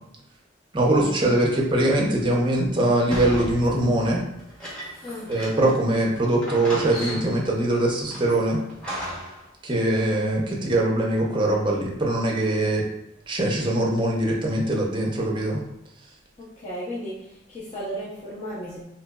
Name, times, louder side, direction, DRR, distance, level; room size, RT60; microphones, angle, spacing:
voice 1, 0.7-4.2 5.3-8.6 9.6-12.8 13.3-15.6, right 1 dB, 25° right, -1 dB, 0.6 m, -22 dB
sound 1, 3.1-5.8 6.1-6.2 6.4-7.5 8.1-9.4, equal, 5° left, 0.9 m, -35 dB
voice 2, 5.0-5.4 16.4-18.8, equal, 30° left, -8 dB, 0.6 m, -35 dB
3.7 x 3.0 x 2.3 m, 0.84 s
head